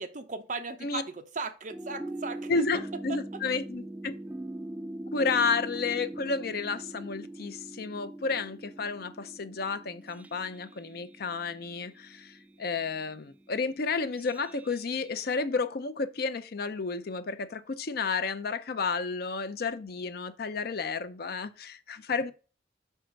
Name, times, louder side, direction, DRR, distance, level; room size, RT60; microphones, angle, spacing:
voice 1, 0.0-2.7 3.1-3.2 5.2-5.3, right 4 dB, 45° right, 0.7 m, -37 dB
sound 1, 1.7-15.3, right 1 dB, 10° right, 0.3 m, -42 dB
voice 2, 2.5-4.1 5.1-22.3, left 4 dB, 55° left, 0.6 m, -31 dB
5.5 x 4.5 x 5.1 m
head